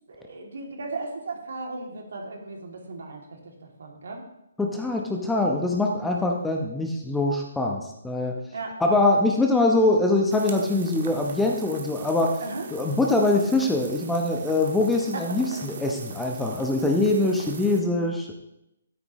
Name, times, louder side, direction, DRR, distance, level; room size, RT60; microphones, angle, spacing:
voice 1, 0.1-3.2 3.6-4.3 8.5-8.8 12.4-12.7 15.1-15.4, right 3 dB, 70° right, 1 dB, 2.6 m, -36 dB
voice 2, 4.6-8.4 8.8-12.4 12.7-18.3, left 2 dB, 5° left, 1 dB, 0.9 m, -23 dB
sound 1, 10.3-17.8, right 5 dB, 50° right, 1.5 m, -41 dB
12.5 x 9.4 x 3.1 m, 0.85 s
hypercardioid pair, 155°, 0 cm